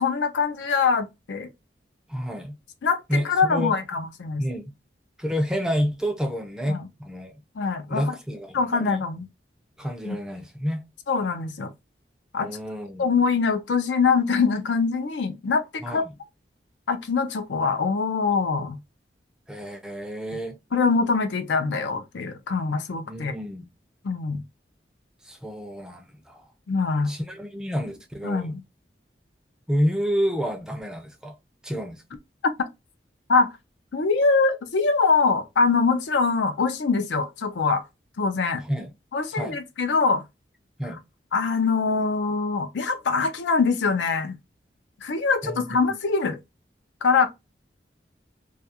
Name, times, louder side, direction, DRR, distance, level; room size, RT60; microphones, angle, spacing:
voice 1, 0.0-1.5 2.8-4.4 6.7-6.9 7.5-8.2 8.5-9.3 10.0-10.2 11.1-11.7 12.3-12.5 13.0-16.0 16.9-18.8 20.3-20.4 20.7-23.3 24.0-24.4 26.7-27.1 28.2-28.6 33.3-33.5 33.9-37.8 38.2-38.6 39.1-40.2 40.8-41.0 41.3-44.4 45.0-46.4 47.0-47.3, left 4 dB, 90° left, 0.5 m, -23 dB
voice 2, 2.1-2.6 3.1-3.8 4.4-4.7 5.2-7.3 7.9-9.0 9.8-10.8 12.4-13.1 15.8-16.1 19.5-20.6 23.1-23.6 25.3-26.4 27.1-28.5 29.7-31.3 31.6-32.0 38.7-38.9 39.3-39.6 40.8-41.0 45.4-45.6 45.9-46.0, equal, 5° right, 0.4 m, -29 dB
2.3 x 2.3 x 2.7 m
head